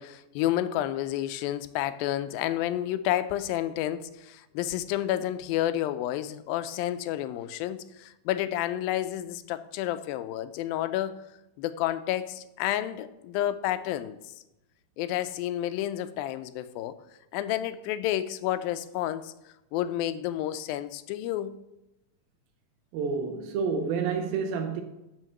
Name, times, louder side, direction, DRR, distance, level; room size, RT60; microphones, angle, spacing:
voice 1, 0.0-11.2 11.6-14.2 15.0-17.0 17.3-19.3 19.7-21.6, left 12 dB, 85° left, 2.4 m, -30 dB
voice 2, 22.9-24.8, right 5 dB, 85° right, 2.6 m, -29 dB
7.5 x 6.5 x 6.5 m
omnidirectional pair, 4.1 m